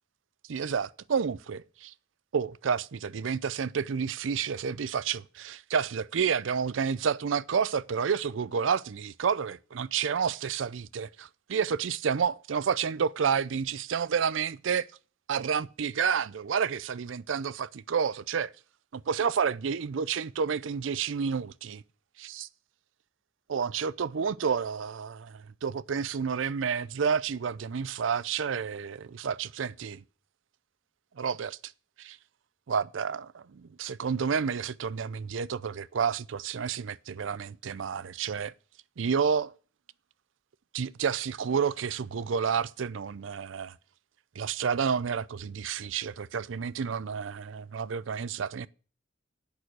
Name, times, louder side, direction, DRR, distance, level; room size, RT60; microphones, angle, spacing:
voice 1, 0.5-1.9 2.3-14.9 15.3-18.5 18.9-21.8 22.2-22.5 23.5-30.0 31.2-31.6 32.0-32.2 32.7-38.5 39.0-39.5 40.7-43.7 44.4-48.7, right 6 dB, 80° right, 0.5 m, -30 dB
8.8 x 6.2 x 7.9 m
head